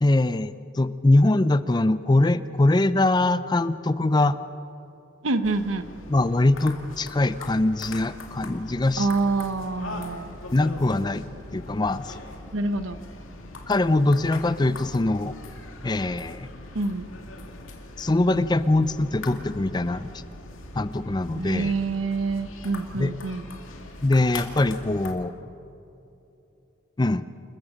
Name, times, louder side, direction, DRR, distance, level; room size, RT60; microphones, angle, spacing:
voice 1, 0.0-4.4 6.1-9.1 10.5-11.3 11.5-12.2 13.7-15.3 15.8-16.5 18.0-20.1 20.8-21.7 23.0-23.1 24.0-25.3 27.0-27.2, left 2 dB, 20° left, 14 dB, 0.5 m, -22 dB
voice 2, 5.2-5.9 9.0-10.3 12.5-13.0 16.7-17.1 21.3-23.5, right 3 dB, 85° right, 10 dB, 1.0 m, -26 dB
sound 1, 5.4-25.1, left 2 dB, 90° left, 2.4 m, -41 dB
29.0 x 14.5 x 6.5 m, 2.9 s
head